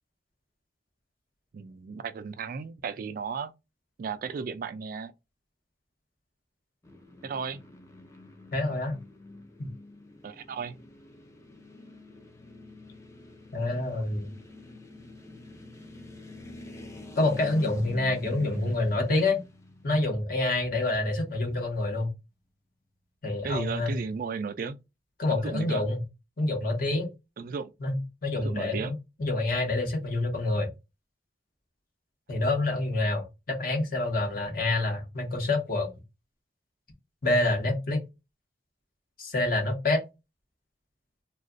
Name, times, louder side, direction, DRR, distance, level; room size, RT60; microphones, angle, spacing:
voice 1, 1.5-3.5 4.0-5.1 7.2-7.6 10.2-10.8 18.2-18.7 23.4-24.8 25.3-25.8 27.4-27.7 28.4-28.9, right 5 dB, 50° right, 0.3 m, -35 dB
sound 1, 6.8-21.0, left 2 dB, 15° left, 0.5 m, -47 dB
voice 2, 8.5-9.0 9.6-9.7 13.5-14.3 17.2-19.4 19.8-22.1 23.2-24.0 25.2-26.0 26.4-27.1 27.8-30.7 32.3-35.9 37.2-38.0 39.2-40.0, left 2 dB, 55° left, 1.1 m, -27 dB
2.4 x 2.3 x 3.7 m
head